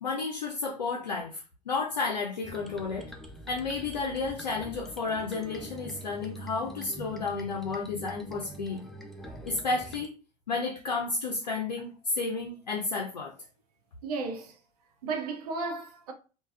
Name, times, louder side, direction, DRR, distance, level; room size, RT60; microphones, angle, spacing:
voice 1, 0.0-3.1 3.5-8.8 9.4-10.1 10.5-13.3, left 4 dB, 80° left, 0.5 m, -32 dB
sound 1, 2.4-10.1, right 1 dB, ahead, 0.4 m, -44 dB
voice 2, 14.0-14.6 15.0-16.1, right 4 dB, 65° right, 0.5 m, -34 dB
3.2 x 2.2 x 2.3 m
figure-of-eight pair, 70°, 21 cm